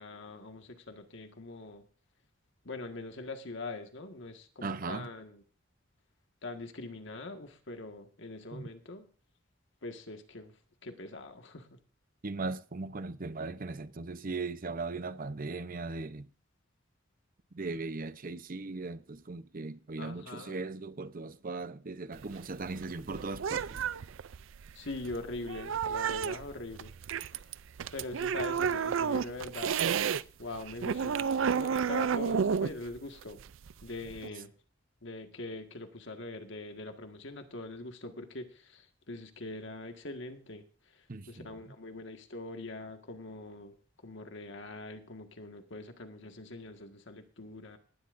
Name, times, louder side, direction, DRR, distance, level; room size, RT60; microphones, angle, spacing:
voice 1, 0.0-1.9 2.6-5.4 6.4-9.1 9.8-10.6 10.8-11.8 20.0-20.6 24.7-26.9 27.9-29.8 30.4-33.4 33.8-34.5 35.0-43.7 44.0-47.8, left 2 dB, 65° left, 1.8 m, -43 dB
voice 2, 4.6-5.1 8.5-8.7 12.2-16.3 17.5-23.8 41.1-41.5, right 3 dB, 45° right, 0.8 m, -38 dB
sound 1, 22.1-30.2 30.5-34.3, right 7 dB, 75° right, 0.4 m, -31 dB
19.0 x 12.0 x 2.6 m
head